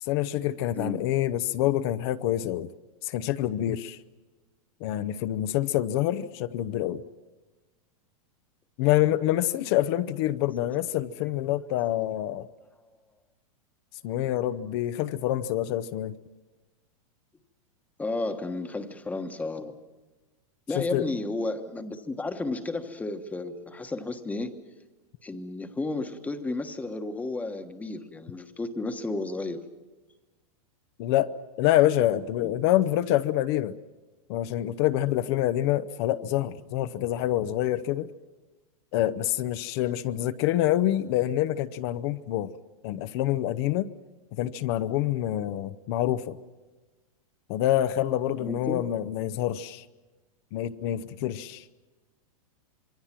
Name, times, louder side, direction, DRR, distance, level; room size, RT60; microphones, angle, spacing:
voice 1, 0.0-2.7 3.0-4.0 4.8-7.0 8.8-12.5 14.0-16.1 20.7-21.1 31.0-31.3 31.6-33.8 34.3-38.1 38.9-42.5 42.8-43.9 44.3-46.4 47.5-49.8 50.5-51.6, left 13 dB, 45° left, 12 dB, 0.8 m, -26 dB
voice 2, 18.0-19.8 20.7-24.6 25.2-29.6 32.4-32.5 48.4-48.8, left 2 dB, 10° left, 7 dB, 1.3 m, -33 dB
26.5 x 22.5 x 6.0 m, 1.2 s
supercardioid pair, 150°, 18 cm